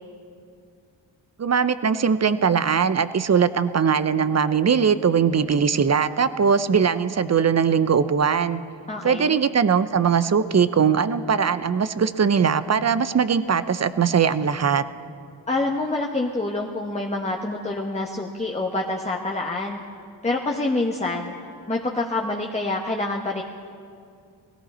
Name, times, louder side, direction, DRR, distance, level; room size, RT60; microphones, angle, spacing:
voice 1, 1.4-8.6 9.0-14.8, right 6 dB, 35° right, 14 dB, 0.6 m, -20 dB
voice 2, 8.9-9.4 15.5-19.8 20.2-21.3 21.7-23.4, left 2 dB, 15° left, 0 dB, 1.1 m, -26 dB
17.0 x 14.0 x 4.3 m, 2.3 s
cardioid pair, 45°, 47 cm